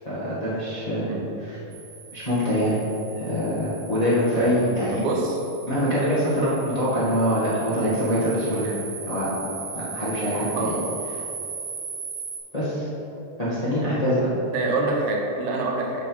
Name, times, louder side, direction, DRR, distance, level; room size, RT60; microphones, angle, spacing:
voice 1, 0.0-1.1 1.4-1.6 2.1-2.7 3.1-5.0 5.7-8.8 9.0-9.3 9.7-10.7 12.5-12.9 13.4-14.3, equal, 75° left, -10 dB, 0.3 m, -24 dB
sound 1, 1.7-12.4, right 6 dB, 90° right, 2.9 m, -38 dB
voice 2, 4.6-5.4 10.5-10.7 14.5-16.1, right 3 dB, 70° right, -1 dB, 1.4 m, -26 dB
11.5 x 4.0 x 4.6 m, 2.8 s
omnidirectional pair, 3.8 m